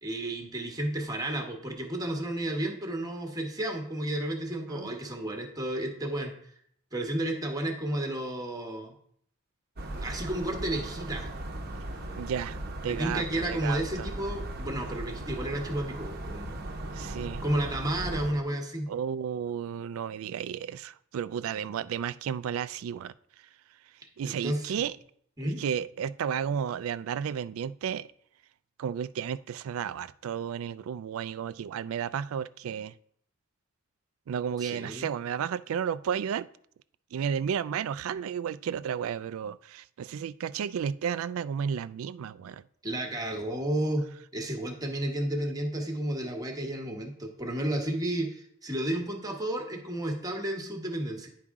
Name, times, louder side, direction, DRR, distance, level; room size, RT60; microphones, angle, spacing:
voice 1, 0.0-6.5 6.9-8.9 9.9-11.3 12.8-16.6 17.4-18.9 24.2-24.7 25.4-25.6 34.6-35.1 42.8-44.1 44.3-51.3, right 1 dB, 20° right, 1.2 m, -32 dB
sound 1, 9.8-18.3, right 1 dB, 50° right, 0.8 m, -38 dB
voice 2, 12.2-14.1 16.9-17.4 18.9-23.1 24.2-25.0 25.4-28.1 28.8-32.9 34.3-36.5 37.1-42.6, right 8 dB, 75° right, 0.3 m, -33 dB
10.0 x 4.8 x 3.6 m
head